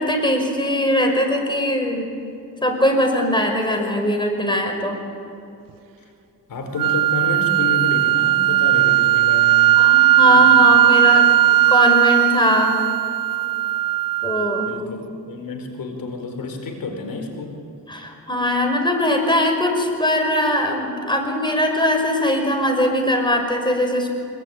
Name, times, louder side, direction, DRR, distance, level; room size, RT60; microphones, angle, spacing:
voice 1, 0.0-2.1 2.6-5.0 9.8-11.2 11.7-12.8 14.2-14.7 17.9-24.2, left 1 dB, 15° left, 3 dB, 5.8 m, -20 dB
voice 2, 6.5-9.8 10.1-11.6 14.6-17.6, left 3 dB, 75° left, 4 dB, 4.7 m, -30 dB
sound 1, 6.8-14.8, right 13 dB, 75° right, 0.5 m, -17 dB
25.5 x 23.0 x 9.5 m, 2.7 s
cardioid pair, 90°, 34 cm